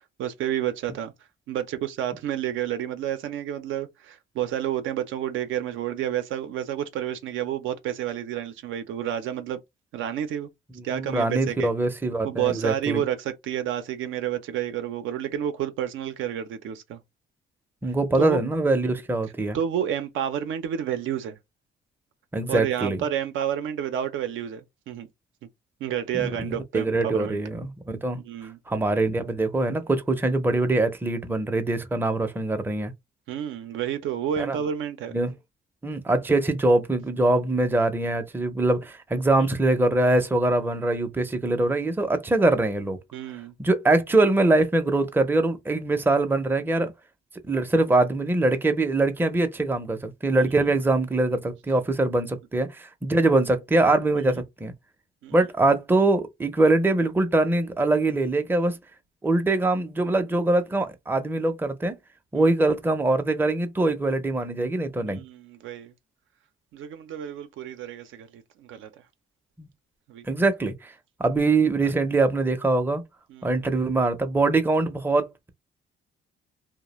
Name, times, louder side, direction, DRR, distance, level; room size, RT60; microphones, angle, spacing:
voice 1, 0.2-1.1 1.5-9.6 9.9-10.5 10.8-11.7 12.2-17.0 18.2-18.4 18.8-18.9 19.5-21.4 22.5-25.1 25.8-27.4 28.2-28.6 33.3-35.2 43.1-43.5 50.4-50.5 54.1-54.4 55.2-55.4 62.3-62.5 65.1-65.9 66.7-68.9 70.1-70.2 73.3-73.5, right 10 dB, 80° right, 0.5 m, -30 dB
voice 2, 10.9-13.0 17.8-19.6 22.3-23.0 26.1-27.7 28.0-28.2 28.7-32.9 34.5-34.6 35.1-35.3 35.8-43.0 43.6-46.9 47.5-54.7 55.3-58.8 59.2-62.0 62.3-65.2 69.6-69.7 70.2-70.9 71.2-73.0 73.4-75.5, right 2 dB, 10° right, 0.5 m, -23 dB
2.3 x 2.1 x 2.9 m
cardioid pair, 90°, 20 cm